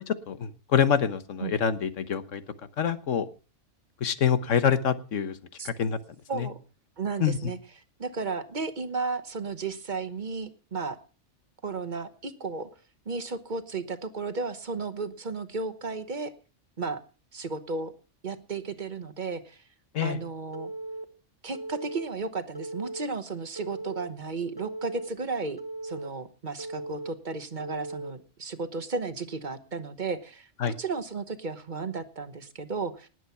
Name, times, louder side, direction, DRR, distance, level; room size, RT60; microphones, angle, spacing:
voice 1, 0.3-2.4 2.8-3.3 4.0-5.4 5.6-6.0 6.3-6.5 7.2-7.4 19.9-20.2 30.6-30.7, left 8 dB, 85° left, 13 dB, 1.5 m, -26 dB
voice 2, 7.0-7.6 8.0-11.0 11.6-12.7 13.1-16.3 16.8-17.0 17.3-17.9 18.2-19.6 20.0-20.7 21.4-33.1, right 4 dB, 40° right, 12 dB, 1.2 m, -34 dB
Telephone, 20.5-21.0 21.5-22.1 22.5-23.1 23.6-24.1 24.6-25.1 25.6-26.1 26.6-27.1 27.6-28.1, right 2 dB, 20° right, 1.1 m, -37 dB
19.0 x 8.1 x 5.7 m, 0.36 s
omnidirectional pair, 1.3 m